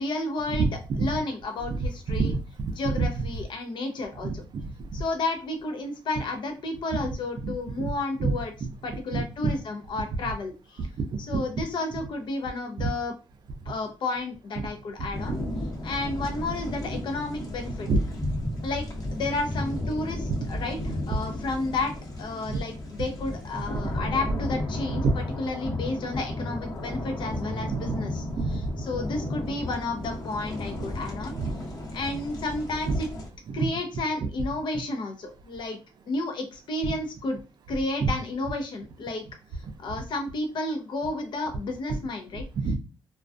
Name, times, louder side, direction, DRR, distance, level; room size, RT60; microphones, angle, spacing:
voice 1, 0.0-0.7 1.0-2.3 2.7-4.4 4.9-8.5 8.8-10.9 11.3-13.1 13.7-15.4 15.8-17.9 18.6-18.9 19.1-21.9 22.2-28.3 28.5-31.4 31.9-33.1 33.5-35.8 36.1-37.4 37.7-39.2 39.8-42.4, left 2 dB, 60° left, 0.6 m, -31 dB
voice 2, 0.6-1.1 1.7-3.2 4.2-4.6 6.9-7.1 7.4-7.9 8.2-8.3 9.1-9.5 10.1-10.2 11.1-11.6 12.8-12.9 14.6-14.7 15.3-15.4 17.9-18.0 23.6-23.8 24.3-24.4 24.9-25.2 27.6-27.9 28.4-28.5 31.3-31.5 32.9-33.0 33.5-33.6 34.2-34.3 36.8-36.9 38.0-38.1 42.3-42.8, right 4 dB, 50° right, 0.4 m, -28 dB
sound 1, 15.1-33.3, left 1 dB, 40° left, 0.9 m, -34 dB
2.3 x 2.2 x 2.5 m
cardioid pair, 95°, 9 cm